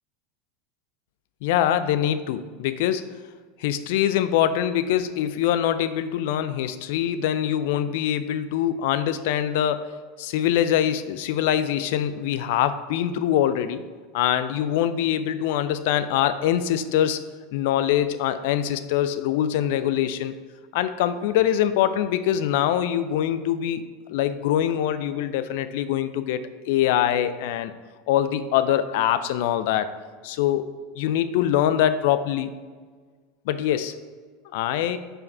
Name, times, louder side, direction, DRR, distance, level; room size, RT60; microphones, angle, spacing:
voice 1, 1.4-3.1 3.6-9.9 10.2-13.8 14.1-17.2 17.5-20.3 20.7-27.7 28.1-29.9 30.2-32.5 33.5-33.9 34.5-35.0, left 11 dB, 65° left, 12 dB, 0.4 m, -24 dB
5.1 x 4.7 x 4.6 m, 1.5 s
hypercardioid pair, 85°, 0 cm